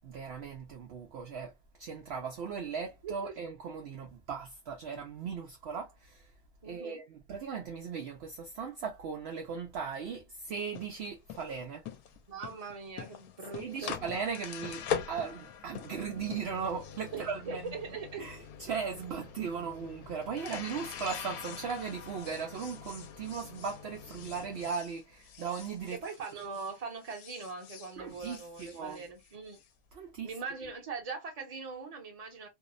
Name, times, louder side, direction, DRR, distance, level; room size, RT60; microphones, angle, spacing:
voice 1, 0.0-1.5 1.8-6.3 6.6-11.8 13.5-17.7 18.2-26.0 28.0-29.0 29.9-30.3, right 6 dB, 70° right, 0.6 m, -38 dB
voice 2, 3.0-3.3 6.6-7.0 12.3-14.0 17.1-18.3 25.9-29.6 30.2-32.5, right 4 dB, 35° right, 0.7 m, -41 dB
sound 1, 10.6-26.8 27.0-29.6, left 8 dB, 80° left, 1.0 m, -43 dB
2.7 x 2.0 x 2.4 m
omnidirectional pair, 1.6 m